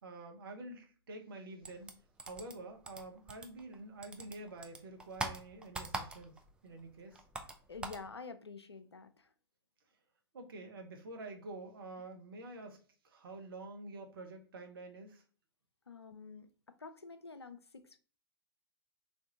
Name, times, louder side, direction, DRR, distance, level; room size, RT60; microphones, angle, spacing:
voice 1, 0.0-2.0 2.2-7.2 10.3-15.2, right 2 dB, 60° right, 1.0 m, -48 dB
sound 1, 1.6-3.8 4.0-6.5 6.8-8.1, right 3 dB, 5° right, 0.4 m, -43 dB
voice 2, 7.7-9.3 15.9-18.0, left 4 dB, 85° left, 0.4 m, -49 dB
3.5 x 2.5 x 3.8 m
figure-of-eight pair, 100°, 13 cm